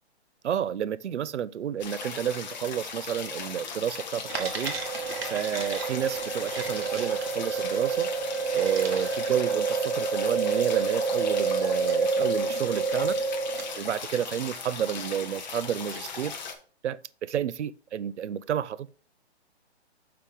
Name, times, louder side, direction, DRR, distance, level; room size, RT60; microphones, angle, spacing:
voice 1, 0.4-4.7 5.2-8.1 8.5-13.2 13.8-16.4 16.8-18.9, right 9 dB, 90° right, 0.6 m, -30 dB
sound 1, 1.8-16.5, left 5 dB, 40° left, 1.2 m, -38 dB
sound 2, 4.3-13.8, right 5 dB, 60° right, 1.8 m, -29 dB
6.6 x 5.7 x 3.7 m
hypercardioid pair, 165°, 34 cm